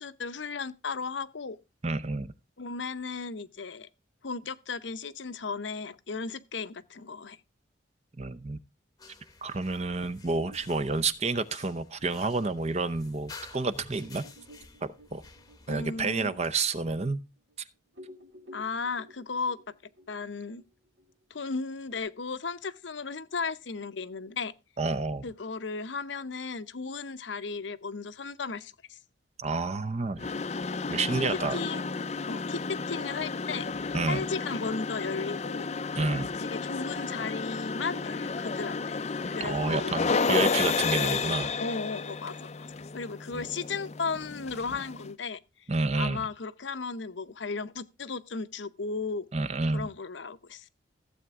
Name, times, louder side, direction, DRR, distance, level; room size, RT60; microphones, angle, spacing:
voice 1, 0.0-1.6 2.6-3.9 4.2-7.4 15.7-16.3 18.5-19.6 20.1-20.6 21.3-24.5 25.2-29.0 31.3-32.0 32.3-35.7 36.4-39.9 41.0-41.1 41.6-42.7 42.9-45.4 45.9-49.3 49.7-50.7, left 4 dB, 80° left, 0.8 m, -35 dB
voice 2, 1.8-2.3 8.2-8.6 9.4-14.2 14.8-15.2 15.7-17.2 24.8-25.3 29.4-30.3 30.9-31.6 33.9-34.2 36.0-36.4 39.4-41.6 43.3-43.4 45.7-46.3 49.3-49.9, right 3 dB, 35° right, 0.7 m, -29 dB
sound 1, 9.0-16.4, left 3 dB, 20° left, 0.9 m, -51 dB
sound 2, 10.0-13.1 13.5-13.6 14.0-17.6 17.9-22.0, left 1 dB, 80° right, 2.0 m, -55 dB
sound 3, 30.2-45.1, left 4 dB, 35° left, 0.5 m, -32 dB
15.5 x 7.9 x 3.6 m
head